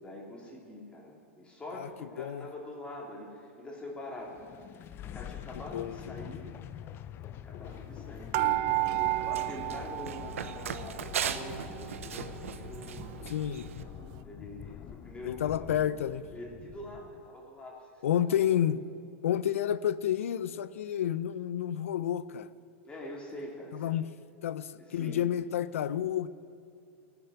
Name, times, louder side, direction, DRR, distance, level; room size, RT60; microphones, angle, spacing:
voice 1, 0.0-6.5 7.3-13.1 14.2-15.7 16.3-18.4 22.8-23.9 24.8-25.2, left 1 dB, 15° left, 2.6 m, -44 dB
sound 1, 4.2-17.3, left 10 dB, 30° left, 0.5 m, -45 dB
voice 2, 5.7-6.3 13.3-13.7 15.2-16.3 18.0-18.8 19.2-22.5 23.8-24.1 24.4-26.3, left 10 dB, 80° left, 0.5 m, -30 dB
sound 2, 8.3-10.9 11.2-12.2 12.7-12.8 13.0-13.1, right 20 dB, 50° right, 0.4 m, -32 dB
Run, 8.7-13.8, right 8 dB, 85° right, 0.7 m, -39 dB
17.0 x 6.9 x 9.6 m
hypercardioid pair, 120°, 7 cm